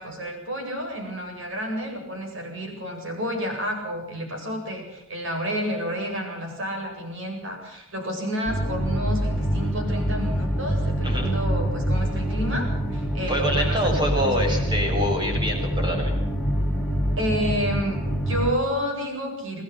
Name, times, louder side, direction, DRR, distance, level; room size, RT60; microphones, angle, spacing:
voice 1, 0.0-14.7 17.2-19.6, equal, 65° right, 3 dB, 7.9 m, -30 dB
sound 1, 8.5-18.5, equal, ahead, 2.9 m, -25 dB
voice 2, 13.3-16.1, equal, 20° right, 1 dB, 7.2 m, -26 dB
27.0 x 19.5 x 6.0 m, 0.85 s
head